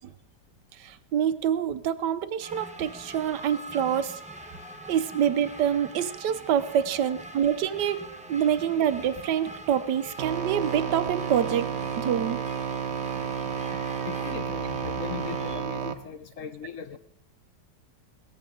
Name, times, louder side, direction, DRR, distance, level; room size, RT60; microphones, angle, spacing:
voice 1, 0.7-4.2 4.9-8.0 8.3-12.4, right 9 dB, 80° right, 13 dB, 1.4 m, -26 dB
sound 1, 2.4-15.6, right 1 dB, 5° right, 0.6 m, -43 dB
sound 2, 10.2-15.9, right 7 dB, 50° right, 0.9 m, -31 dB
voice 2, 14.0-17.0, left 8 dB, 60° left, 11 dB, 0.9 m, -38 dB
18.0 x 14.0 x 3.8 m, 0.69 s
omnidirectional pair, 1.8 m